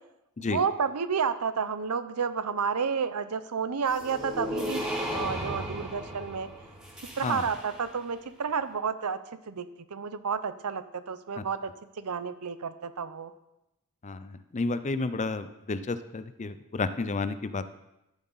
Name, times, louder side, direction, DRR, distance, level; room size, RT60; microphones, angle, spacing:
voice 1, 0.4-6.5 7.2-9.2 9.5-11.7 12.0-13.3, right 6 dB, 85° right, 12 dB, 0.7 m, -31 dB
sound 1, 3.9-7.9, equal, ahead, 3.5 m, -35 dB
voice 2, 14.0-17.7, left 3 dB, 30° left, 12 dB, 0.5 m, -31 dB
14.0 x 7.4 x 4.0 m, 0.92 s
head